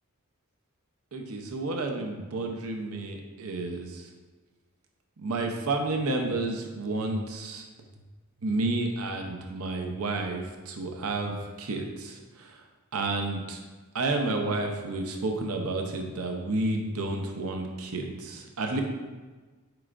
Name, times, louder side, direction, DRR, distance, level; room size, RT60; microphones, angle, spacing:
voice 1, 1.1-4.1 5.2-7.6 8.4-12.6 12.9-13.6 13.9-18.8, right 2 dB, 80° right, 3 dB, 0.7 m, -31 dB
7.7 x 5.0 x 2.5 m, 1.3 s
head